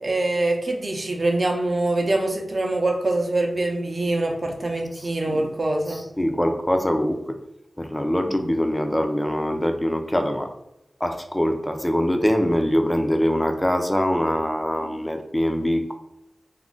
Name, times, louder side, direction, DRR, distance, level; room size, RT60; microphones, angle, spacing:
voice 1, 0.0-6.0 14.9-15.0, right 2 dB, 45° right, 2 dB, 0.5 m, -24 dB
voice 2, 4.9-5.5 5.9-7.4 7.8-10.5 11.0-15.9, equal, 10° left, 5 dB, 0.3 m, -23 dB
2.3 x 2.0 x 3.7 m, 0.82 s
wide cardioid pair, 80°, 0 cm